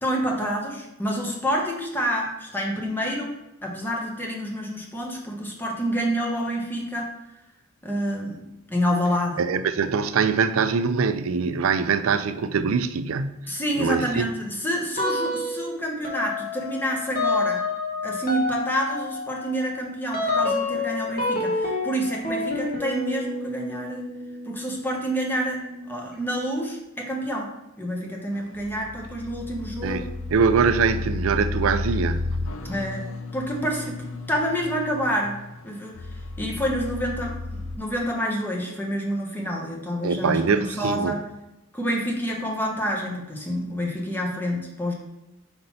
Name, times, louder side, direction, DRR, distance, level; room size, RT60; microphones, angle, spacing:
voice 1, 0.0-3.4 3.6-7.1 7.8-8.4 8.7-9.4 13.5-17.6 18.0-24.1 24.5-27.5 27.8-30.1 32.6-33.1 33.3-41.2 41.7-44.9, equal, 10° left, 1.0 m, -28 dB
voice 2, 9.4-13.5 13.8-14.3 29.8-32.2 40.0-41.1, right 5 dB, 70° right, 0.4 m, -23 dB
sound 1, 15.0-15.7 16.0-26.4, left 3 dB, 45° left, 1.2 m, -29 dB
sound 2, 28.3-37.8, left 2 dB, 65° left, 0.7 m, -33 dB
4.4 x 3.9 x 5.5 m
head